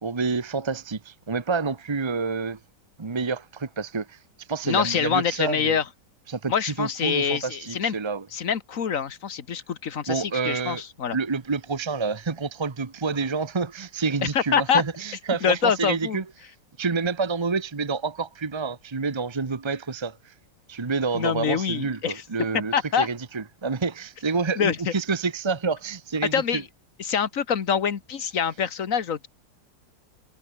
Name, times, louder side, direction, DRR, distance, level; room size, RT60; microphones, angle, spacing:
voice 1, 0.0-2.6 3.0-4.2 4.5-5.8 6.3-6.5 6.8-8.2 10.1-10.8 11.1-16.2 16.8-20.3 20.7-26.6, right 4 dB, 35° right, 0.4 m, -28 dB
voice 2, 4.6-5.8 6.5-7.9 8.3-11.2 14.2-14.8 15.4-16.2 21.1-22.2 22.7-23.1 24.6-24.8 26.3-26.6 27.0-29.3, left 7 dB, 50° left, 1.6 m, -25 dB
omnidirectional pair, 2.0 m